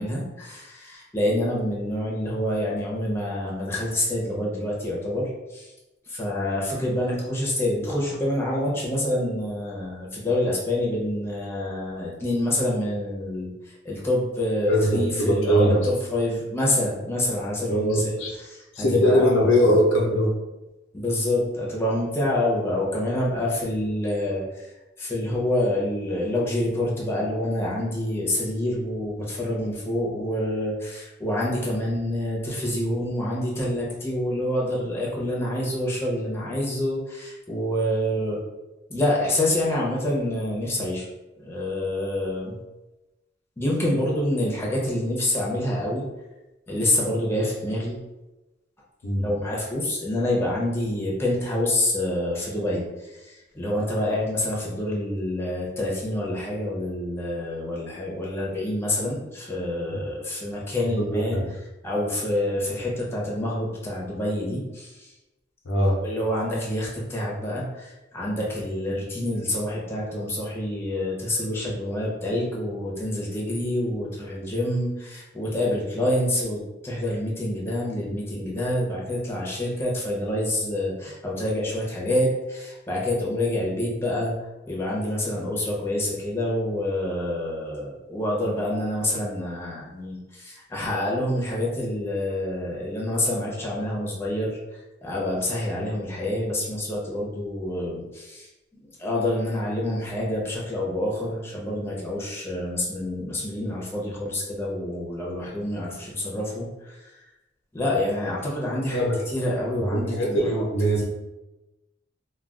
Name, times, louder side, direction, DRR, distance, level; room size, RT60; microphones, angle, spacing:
voice 1, 0.0-5.7 6.1-13.5 13.8-18.1 18.5-19.7 20.9-24.7 25.0-38.4 38.9-41.1 41.4-42.6 43.6-46.1 46.7-48.0 49.2-61.4 61.8-65.1 65.8-84.3 84.7-94.6 95.0-98.5 98.8-107.1 107.7-110.6, left 1 dB, 15° left, -4 dB, 0.7 m, -27 dB
voice 2, 14.7-15.9 17.7-18.4 18.7-20.4 49.0-49.3 61.0-61.5 65.6-66.0 108.9-109.2 109.8-111.1, equal, 85° left, -1 dB, 0.6 m, -21 dB
2.3 x 2.3 x 3.6 m, 1.0 s
head